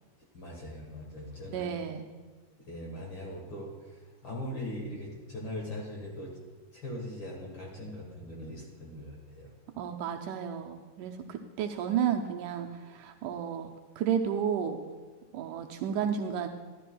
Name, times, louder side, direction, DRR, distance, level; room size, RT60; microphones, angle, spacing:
voice 1, 0.3-1.7 2.6-3.7 4.2-6.3 6.7-9.5, left 1 dB, 50° left, -2 dB, 1.7 m, -40 dB
voice 2, 1.5-2.1 9.8-13.7 14.0-14.8 15.3-16.5, right 8 dB, 80° right, 3 dB, 2.0 m, -32 dB
13.0 x 11.5 x 2.3 m, 1.3 s
omnidirectional pair, 3.8 m